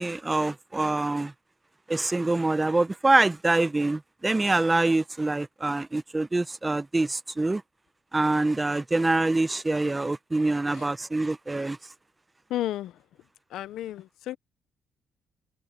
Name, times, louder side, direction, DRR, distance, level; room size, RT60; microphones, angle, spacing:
voice 1, 0.0-1.3 1.9-7.6 8.1-11.8, right 2 dB, 20° right, 0.7 m, -25 dB
voice 2, 12.5-13.0 13.5-14.4, left 13 dB, 80° left, 0.6 m, -32 dB
cardioid pair, 90°, 0 cm